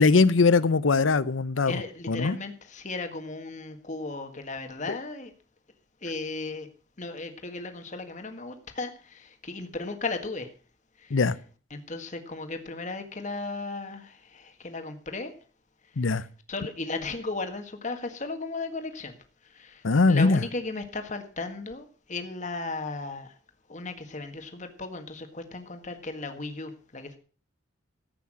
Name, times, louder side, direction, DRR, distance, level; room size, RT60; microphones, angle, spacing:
voice 1, 0.0-1.8 2.1-2.4 4.9-5.0 11.1-11.4 16.0-16.2 19.8-20.4, left 4 dB, 90° left, 0.7 m, -21 dB
voice 2, 1.7-5.3 6.0-6.7 7.0-10.5 11.0-11.2 11.7-15.3 16.0-16.1 16.5-19.2 19.4-23.4 23.7-27.2, left 3 dB, 40° left, 1.7 m, -36 dB
14.0 x 8.5 x 6.2 m
head